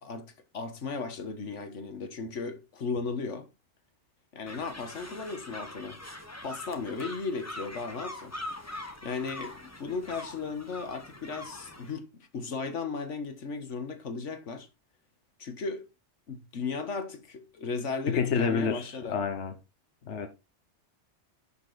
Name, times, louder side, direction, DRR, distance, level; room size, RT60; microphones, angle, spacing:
voice 1, 0.0-3.5 4.3-6.0 6.4-8.3 9.0-14.7 15.4-15.8 16.3-19.1, left 4 dB, 90° left, 1.7 m, -36 dB
sound 1, 4.5-11.9, left 1 dB, 15° left, 1.3 m, -43 dB
voice 2, 18.1-19.5 20.0-20.3, left 6 dB, 75° left, 1.3 m, -28 dB
11.0 x 5.8 x 4.1 m
omnidirectional pair, 1.2 m